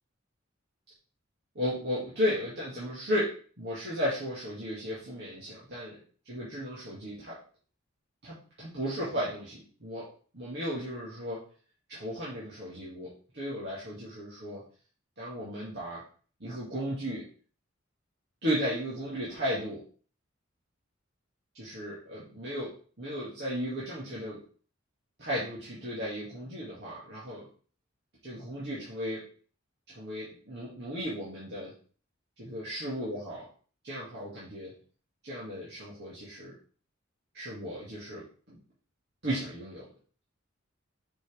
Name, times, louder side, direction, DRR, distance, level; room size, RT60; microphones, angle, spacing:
voice 1, 1.5-3.3 3.6-6.0 6.2-7.4 8.2-10.1 10.3-11.4 11.9-14.6 15.2-16.0 16.4-17.2 18.4-19.8 21.5-24.4 25.2-27.5 28.2-29.2 29.9-31.7 32.4-33.5 33.8-34.7 35.2-36.5 37.3-38.2 39.2-39.8, equal, 55° right, -9 dB, 2.3 m, -35 dB
6.1 x 5.8 x 3.5 m, 0.41 s
head